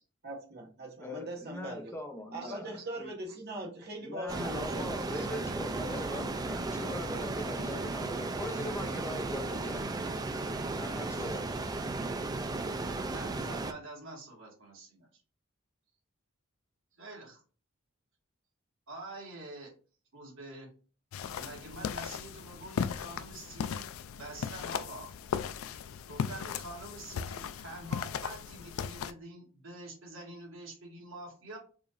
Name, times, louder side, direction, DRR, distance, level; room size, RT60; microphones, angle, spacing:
voice 1, 0.2-1.9 2.3-5.3, right 1 dB, 50° right, -1 dB, 1.2 m, -41 dB
voice 2, 1.0-3.1 4.0-9.9 10.8-11.5, left 1 dB, 10° left, 4 dB, 0.7 m, -41 dB
sound 1, 4.3-13.7, right 3 dB, 20° right, 0.4 m, -35 dB
voice 3, 13.1-15.1 17.0-17.4 18.9-19.7 20.1-20.7 21.4-23.9 24.2-25.1 26.1-31.6, right 2 dB, 70° right, -1 dB, 1.8 m, -46 dB
sound 2, 21.1-29.1, left 7 dB, 75° left, 0.3 m, -37 dB
4.8 x 2.6 x 2.5 m, 0.37 s
head